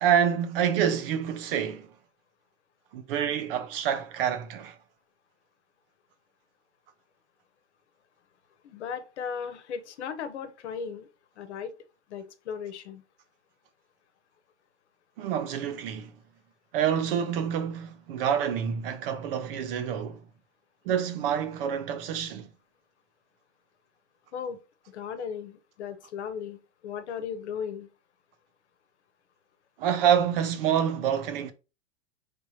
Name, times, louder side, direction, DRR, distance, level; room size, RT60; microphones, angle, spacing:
voice 1, 0.0-1.9 2.9-4.8 15.2-16.1 16.7-20.3 20.8-22.5 29.8-31.5, right 8 dB, 55° right, 0.8 m, -27 dB
voice 2, 8.6-11.1 11.4-11.7 12.1-13.0 24.3-24.6 24.9-27.9, left 7 dB, 75° left, 1.0 m, -36 dB
4.2 x 3.4 x 3.1 m
hypercardioid pair, 130°, 34 cm